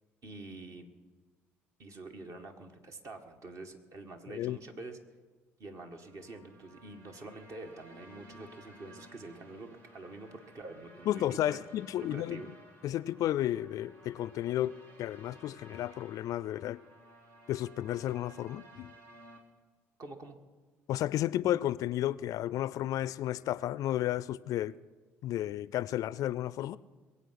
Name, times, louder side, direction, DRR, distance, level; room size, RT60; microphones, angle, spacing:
voice 1, 0.2-0.9 1.8-5.0 5.6-11.6 12.0-12.5 20.0-20.4, right 2 dB, 50° right, 1.9 m, -46 dB
sound 1, 5.9-19.4, equal, 75° right, 2.4 m, -56 dB
voice 2, 11.1-12.4 12.8-14.7 15.0-16.8 17.5-18.9 20.9-24.7 25.2-26.8, left 13 dB, 55° left, 0.4 m, -32 dB
22.5 x 8.3 x 5.9 m
hypercardioid pair, 55°, 7 cm